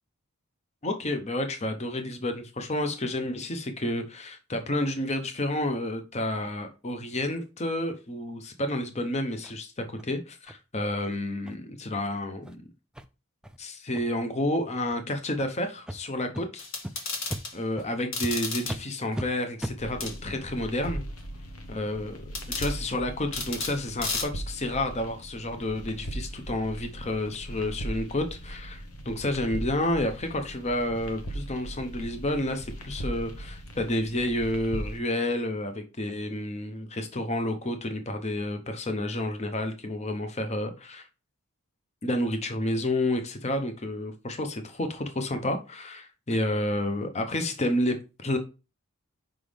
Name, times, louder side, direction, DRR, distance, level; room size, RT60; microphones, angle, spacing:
voice 1, 0.8-12.6 13.6-16.7 17.5-21.0 21.7-41.1 42.0-48.4, left 1 dB, 30° left, 0.8 m, -30 dB
sound 1, 9.4-9.5 10.0-10.1 10.5-10.6 10.9-11.0 11.4-11.5 11.9-12.1 12.4-12.5 12.9-13.0 13.4-13.6 13.9-14.3 14.8-15.0 15.4-15.5 15.9-16.0 16.3-16.4 16.8-16.9 17.3-17.4 17.8-17.9 18.2-18.3 18.7-18.8 19.1-19.3 19.6-19.8, equal, 5° right, 0.3 m, -36 dB
sound 2, 16.6-17.5 18.1-18.8 20.0-20.2 22.3-22.7 23.3-23.8 24.0-24.2, left 3 dB, 60° left, 1.7 m, -32 dB
sound 3, 19.8-35.0, right 1 dB, 80° left, 1.0 m, -39 dB
5.8 x 5.0 x 3.4 m
head